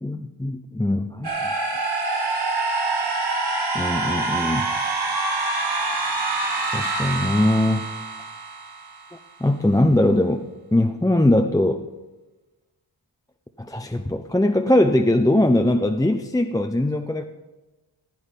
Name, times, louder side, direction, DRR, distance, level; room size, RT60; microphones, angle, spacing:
voice 1, 0.0-1.5 3.7-4.7 6.7-7.9 9.4-10.5 10.7-11.8 13.6-17.3, left 1 dB, 10° left, 6 dB, 0.6 m, -21 dB
sound 1, 1.2-9.2, right 3 dB, 55° right, 2.5 m, -26 dB
15.0 x 9.3 x 5.3 m, 1.2 s
wide cardioid pair, 60°, 47 cm